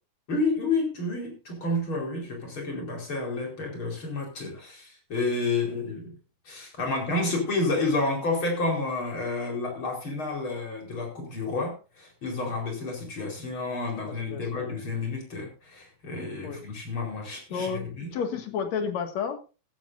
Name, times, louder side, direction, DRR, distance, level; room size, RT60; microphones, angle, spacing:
voice 1, 0.3-6.1 6.4-18.1, left 3 dB, 30° left, 1 dB, 4.9 m, -30 dB
voice 2, 14.0-14.7 16.4-16.6 17.5-19.4, left 6 dB, 50° left, 5 dB, 2.8 m, -32 dB
16.0 x 13.0 x 2.7 m, 0.32 s
omnidirectional pair, 4.7 m